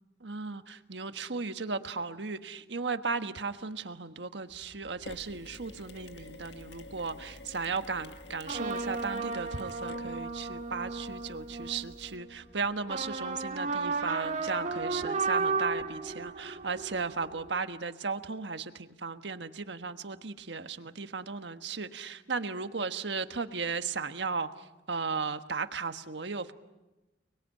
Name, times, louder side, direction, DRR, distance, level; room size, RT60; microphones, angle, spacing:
voice 1, 0.2-26.5, right 4 dB, 80° right, 8 dB, 1.4 m, -36 dB
sound 1, 4.6-5.0 6.2-6.3 8.4-12.4 12.8-17.6, right 4 dB, 45° right, 1.9 m, -34 dB
Mechanisms, 5.1-12.2, left 2 dB, 80° left, 1.7 m, -49 dB
30.0 x 21.5 x 8.9 m, 1.1 s
head